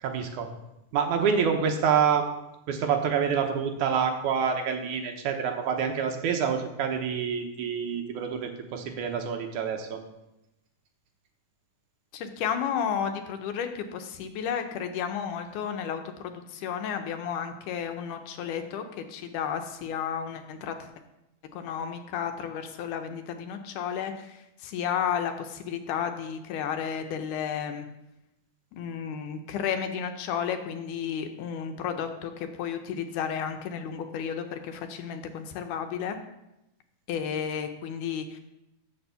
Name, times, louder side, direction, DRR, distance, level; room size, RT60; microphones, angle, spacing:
voice 1, 0.0-0.5 0.9-2.3 2.7-10.0, right 7 dB, 80° right, 4 dB, 2.3 m, -27 dB
voice 2, 12.1-20.9 21.5-27.9 28.8-36.2 37.1-38.4, left 8 dB, 85° left, 7 dB, 2.3 m, -32 dB
7.0 x 6.6 x 6.8 m, 0.90 s
omnidirectional pair, 3.6 m